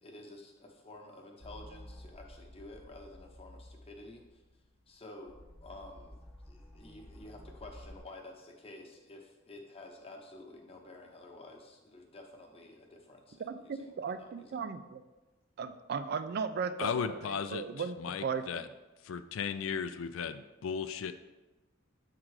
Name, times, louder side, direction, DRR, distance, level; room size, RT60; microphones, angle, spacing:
voice 1, 0.0-4.2 4.9-6.1 6.5-14.6, left 2 dB, 30° left, 1 dB, 0.9 m, -51 dB
sound 1, 1.4-8.0, left 1 dB, 5° left, 0.8 m, -52 dB
voice 2, 13.7-15.0 15.6-18.7, right 6 dB, 50° right, 11 dB, 0.3 m, -36 dB
voice 3, 16.8-17.6 18.0-18.7 19.0-21.1, left 6 dB, 80° left, 10 dB, 0.4 m, -35 dB
7.4 x 3.8 x 4.7 m, 1.1 s
head